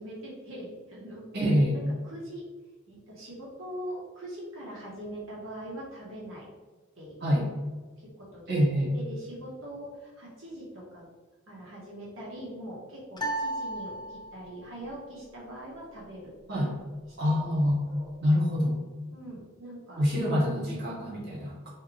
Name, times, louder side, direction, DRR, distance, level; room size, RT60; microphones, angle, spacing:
voice 1, 0.0-2.4 2.9-6.5 7.0-7.3 8.0-8.7 8.9-11.0 11.5-16.7 17.2-17.3 17.8-18.1 19.1-20.3, right 1 dB, 80° right, -6 dB, 1.4 m, -42 dB
voice 2, 1.3-1.7 7.2-7.5 8.5-8.9 16.5-16.7 17.2-17.8 18.2-18.7 20.0-21.7, equal, 55° right, -6 dB, 1.5 m, -25 dB
sound 1, 13.2-14.6, right 1 dB, 20° left, 0.4 m, -34 dB
5.5 x 2.5 x 3.5 m, 1.3 s
head